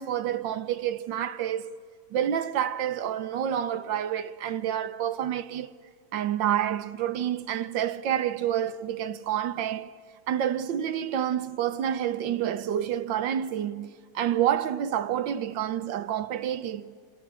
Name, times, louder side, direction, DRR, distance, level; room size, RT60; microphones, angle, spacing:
voice 1, 0.0-1.8 2.1-5.7 6.1-9.9 10.3-16.9, right 10 dB, 75° right, 1.6 m, -28 dB
28.0 x 27.5 x 6.3 m
omnidirectional pair, 2.1 m